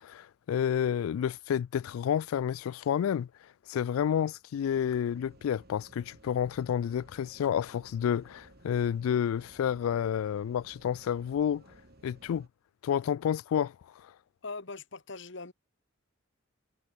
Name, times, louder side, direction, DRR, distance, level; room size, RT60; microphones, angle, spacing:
voice 1, 0.0-3.3 3.7-11.6 12.0-12.5 12.8-14.1, left 8 dB, 85° left, 0.3 m, -30 dB
sound 1, 4.7-12.5, right 1 dB, 50° right, 3.3 m, -57 dB
voice 2, 14.4-15.5, left 3 dB, 60° left, 1.7 m, -41 dB
head